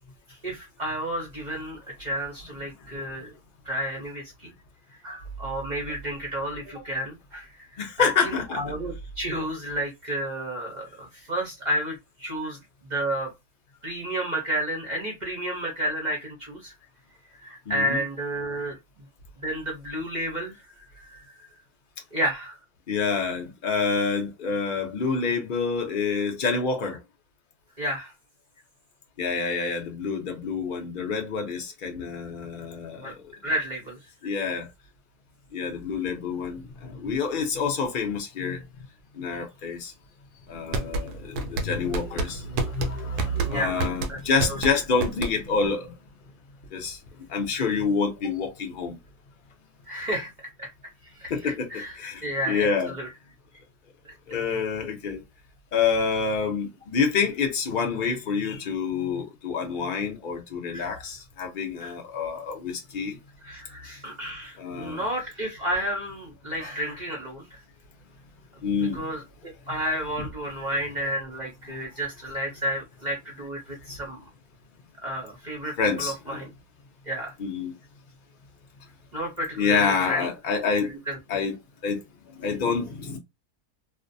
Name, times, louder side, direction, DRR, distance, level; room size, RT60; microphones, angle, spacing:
voice 1, 0.4-3.3 3.6-4.5 5.0-13.3 13.8-16.7 17.4-18.8 19.4-21.4 22.1-22.6 27.8-28.1 33.0-33.1 33.4-34.0 39.3-39.4 43.4-44.2 44.5-44.6 47.5-47.7 49.9-50.3 50.6-50.7 51.1-53.1 60.7-60.9 61.8-61.9 63.4-67.5 68.9-69.2 69.7-74.2 75.0-76.5 77.1-77.3 79.1-80.3 80.9-81.2, right 1 dB, 45° right, 0.6 m, -31 dB
voice 2, 7.8-8.6 17.7-18.0 18.5-18.6 22.9-27.0 29.2-33.2 34.2-34.7 35.5-38.9 39.1-39.9 40.5-46.0 46.7-49.0 51.3-52.9 54.3-55.2 55.7-63.2 64.6-65.1 68.6-69.1 70.2-70.3 70.6-70.7 71.7-71.8 75.8-76.4 77.4-77.7 79.6-80.9 81.3-81.5 81.8-83.2, left 5 dB, 55° left, 0.5 m, -27 dB
sound 1, 40.5-45.7, right 2 dB, 80° right, 1.1 m, -30 dB
2.5 x 2.1 x 2.6 m
omnidirectional pair, 1.7 m